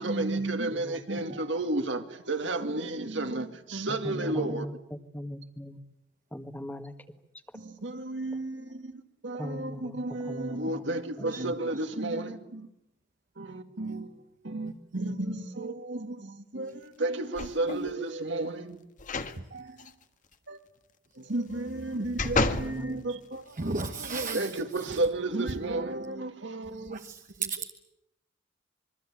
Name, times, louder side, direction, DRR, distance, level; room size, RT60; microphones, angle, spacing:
voice 1, 0.0-4.7 7.5-12.7 13.4-18.8 19.5-19.8 20.5-20.6 21.2-23.8 24.1-27.0, right 2 dB, 75° right, 6 dB, 2.4 m, -32 dB
voice 2, 4.0-5.8 6.3-6.9 9.4-10.8 11.2-11.5 22.2-23.0, left 1 dB, 10° left, 7 dB, 1.6 m, -39 dB
sound 1, 17.4-17.9 19.0-19.4 19.8-19.9 21.5-22.7 23.3-23.4, left 3 dB, 45° left, 1.5 m, -30 dB
voice 3, 19.4-19.7 23.5-25.0 26.9-27.7, right 4 dB, 45° right, 6 dB, 1.2 m, -36 dB
26.5 x 23.0 x 8.7 m, 0.85 s
head